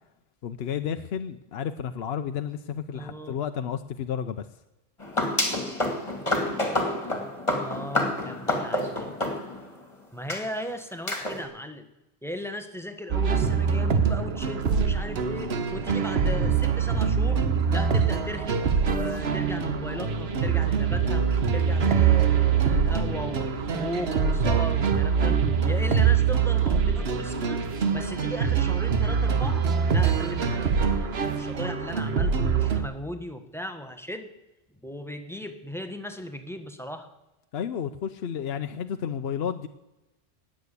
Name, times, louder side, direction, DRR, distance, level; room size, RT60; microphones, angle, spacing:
voice 1, 0.4-4.5 37.5-39.7, left 8 dB, 75° left, 9 dB, 0.9 m, -31 dB
voice 2, 2.9-3.4 7.6-9.1 10.1-11.9 12.2-17.4 17.7-27.6 27.9-34.3 34.8-37.1, equal, ahead, 7 dB, 1.3 m, -37 dB
sound 1, 5.0-9.8 10.3-10.4 11.1-11.4, left 1 dB, 30° left, 2.5 m, -28 dB
sound 2, 13.1-32.8, right 6 dB, 80° right, 1.3 m, -24 dB
19.0 x 7.7 x 8.3 m, 0.98 s
omnidirectional pair, 1.1 m